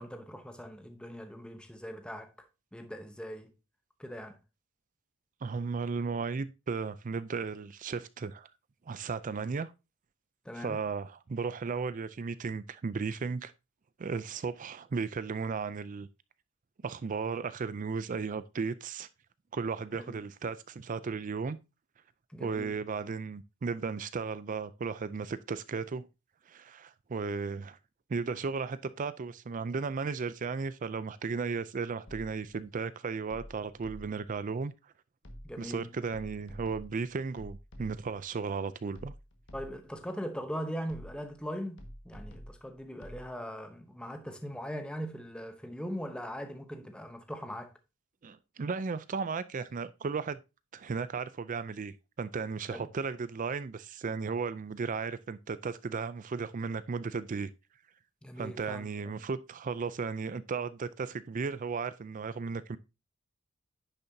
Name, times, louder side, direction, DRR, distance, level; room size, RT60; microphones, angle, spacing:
voice 1, 0.0-2.3 2.7-3.5 4.0-4.4 10.4-10.8 20.1-20.2 22.3-22.7 35.4-35.9 39.5-47.7 52.7-52.9 58.2-58.9, equal, 5° left, 0.7 m, -40 dB
voice 2, 5.4-8.5 8.9-9.7 10.6-13.5 14.0-16.1 16.8-19.1 19.5-21.6 22.4-26.1 26.5-27.8 28.1-34.7 35.6-39.1 48.2-50.4 50.7-57.5 58.4-62.8, right 5 dB, 35° right, 0.4 m, -35 dB
sound 1, 32.1-32.6 33.3-34.4 35.2-35.8 36.1-38.3 39.0-40.0 40.9-41.4 41.8-43.3, equal, 55° left, 1.6 m, -48 dB
10.0 x 6.7 x 2.7 m
head